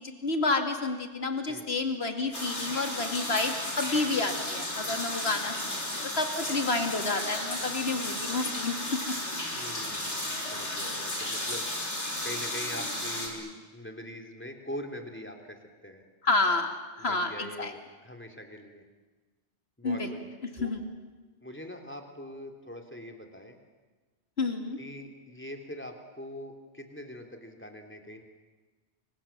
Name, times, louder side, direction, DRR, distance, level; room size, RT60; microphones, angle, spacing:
voice 1, 0.0-5.8 6.2-8.7 9.1-9.2 16.2-17.7 19.8-20.1 20.6-20.8 24.4-24.8, left 3 dB, 65° left, 6 dB, 2.7 m, -29 dB
sound 1, 2.3-13.3, left 1 dB, 80° left, 5.3 m, -34 dB
voice 2, 9.5-11.7 12.2-16.0 17.0-18.8 19.8-20.7 21.4-23.6 24.8-28.2, left 1 dB, 10° left, 3 dB, 3.4 m, -43 dB
29.5 x 25.5 x 7.5 m, 1.3 s
omnidirectional pair, 1.2 m